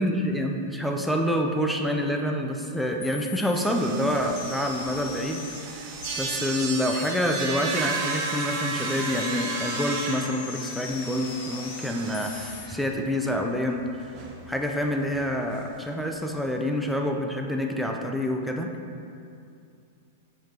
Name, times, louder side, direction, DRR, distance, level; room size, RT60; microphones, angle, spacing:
voice 1, 0.0-13.9 14.5-18.7, equal, ahead, 2 dB, 0.5 m, -27 dB
sound 1, 3.0-3.7 4.4-5.6 6.0-12.7, left 10 dB, 55° left, 0.5 m, -42 dB
sound 2, 3.5-12.9 13.2-13.3 13.6-13.7 14.0-14.3 14.7-14.8 15.0-15.2 16.4-16.5, right 4 dB, 45° right, 1.2 m, -34 dB
7.7 x 7.2 x 2.9 m, 2.5 s
hypercardioid pair, 145°, 0 cm